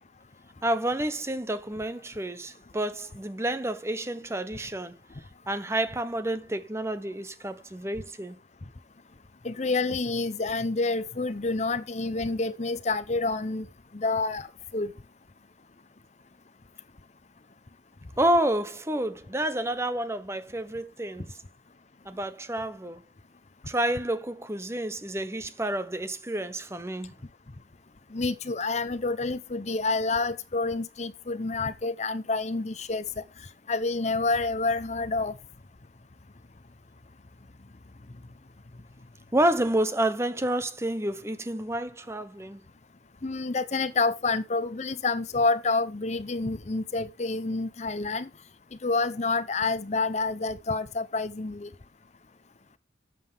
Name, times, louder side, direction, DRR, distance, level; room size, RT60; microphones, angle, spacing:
voice 1, 0.6-5.0 5.5-8.4 18.2-21.3 22.1-23.0 23.7-27.1 39.3-42.6, right 1 dB, 15° right, 0.8 m, -29 dB
voice 2, 9.4-13.7 13.9-14.5 14.7-14.9 28.1-33.1 33.7-35.4 43.2-48.3 48.8-51.7, left 3 dB, 40° left, 0.7 m, -28 dB
12.5 x 7.8 x 3.5 m
head